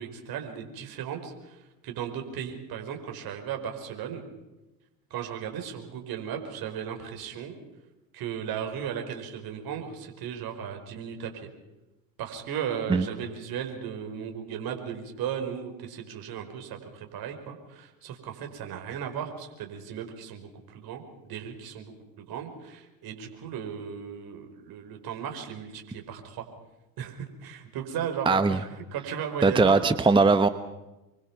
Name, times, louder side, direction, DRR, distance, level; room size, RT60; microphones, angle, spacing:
voice 1, 0.0-4.2 5.1-7.5 8.1-11.5 12.2-26.5 27.0-29.8, right 8 dB, 45° right, 4 dB, 5.0 m, -36 dB
voice 2, 28.3-28.6 29.4-30.5, right 4 dB, 10° right, 12 dB, 1.0 m, -20 dB
26.0 x 24.5 x 6.0 m, 1.0 s
hypercardioid pair, 85°, 48 cm